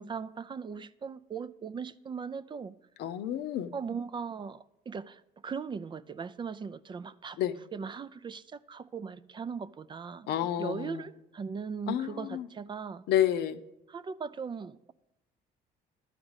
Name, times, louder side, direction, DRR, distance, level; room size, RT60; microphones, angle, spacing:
voice 1, 0.0-2.7 3.7-7.4 7.7-10.3 10.6-13.0 13.9-14.9, right 5 dB, 30° right, 0.4 m, -39 dB
voice 2, 3.0-3.7 7.4-7.6 10.3-11.1 11.9-12.5 13.1-13.6, left 11 dB, 75° left, 0.7 m, -30 dB
12.0 x 5.0 x 8.0 m
cardioid pair, 110°, 17 cm